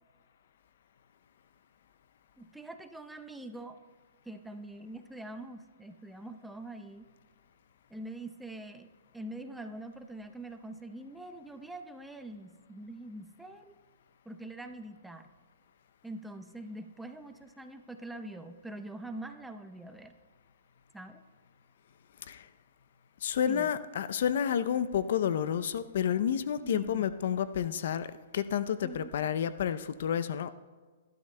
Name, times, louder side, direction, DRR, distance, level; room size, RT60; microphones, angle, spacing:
voice 1, 2.4-3.8 4.2-7.0 7.9-8.9 9.1-13.7 14.2-15.3 16.0-20.1 20.9-21.2 23.4-23.7 26.6-27.0 28.8-29.1, right 1 dB, 5° right, 7 dB, 0.7 m, -44 dB
voice 2, 23.2-28.1 28.3-30.5, left 9 dB, 65° left, 13 dB, 0.5 m, -30 dB
19.0 x 12.5 x 2.2 m, 1.5 s
hypercardioid pair, 130°, 0 cm